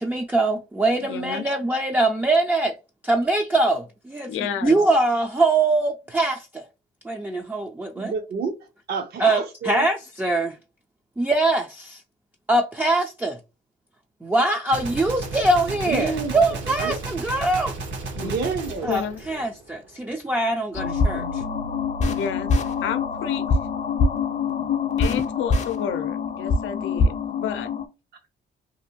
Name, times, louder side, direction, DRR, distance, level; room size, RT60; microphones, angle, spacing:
voice 1, 0.0-2.7 3.0-6.6 7.0-8.1 9.2-10.6 11.2-12.0 12.5-13.4 14.2-17.8 18.8-21.4, right 2 dB, 10° right, 0.4 m, -23 dB
voice 2, 1.0-1.4 4.3-4.8 18.2-18.3 18.9-19.2 20.5-20.6 22.1-23.4 25.0-27.7, left 8 dB, 80° left, 0.5 m, -30 dB
voice 3, 8.0-8.5 8.9-9.9 15.8-16.4 16.8-17.0 18.2-18.9 24.6-24.7, right 5 dB, 55° right, 0.6 m, -29 dB
Gunshot gunfire, 14.7-19.9, right 3 dB, 70° right, 1.0 m, -34 dB
sound 1, 20.7-27.9, left 4 dB, 35° left, 0.6 m, -24 dB
2.6 x 2.4 x 2.7 m
cardioid pair, 90°, 20 cm